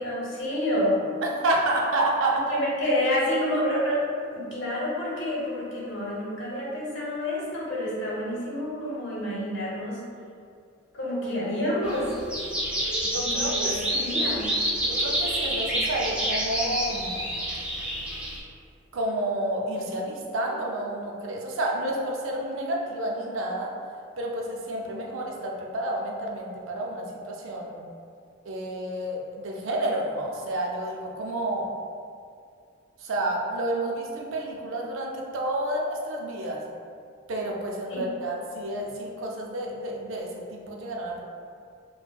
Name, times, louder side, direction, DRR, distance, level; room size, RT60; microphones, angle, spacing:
voice 1, 0.0-1.0 2.5-10.0 10.9-12.2 13.2-14.5 37.9-38.1, left 1 dB, 70° left, -6 dB, 0.9 m, -28 dB
voice 2, 1.2-2.6 13.0-14.1 14.9-17.3 18.9-23.7 24.2-27.8 28.4-31.7 33.0-36.6 37.3-41.2, right 1 dB, 90° right, -1 dB, 0.5 m, -30 dB
sound 1, 11.8-18.4, right 1 dB, 5° right, 0.5 m, -28 dB
4.2 x 2.1 x 2.2 m, 2.3 s
head